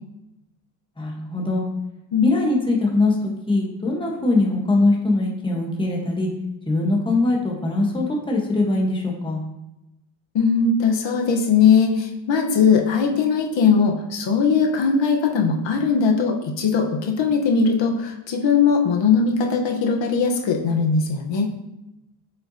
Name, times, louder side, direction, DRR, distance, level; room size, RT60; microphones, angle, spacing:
voice 1, 1.0-1.6 2.2-6.3 6.7-9.4, left 2 dB, 10° left, -1 dB, 1.0 m, -22 dB
voice 2, 10.3-21.5, left 5 dB, 60° left, 1 dB, 1.0 m, -19 dB
7.8 x 5.7 x 2.7 m, 0.93 s
cardioid pair, 155°, 50 cm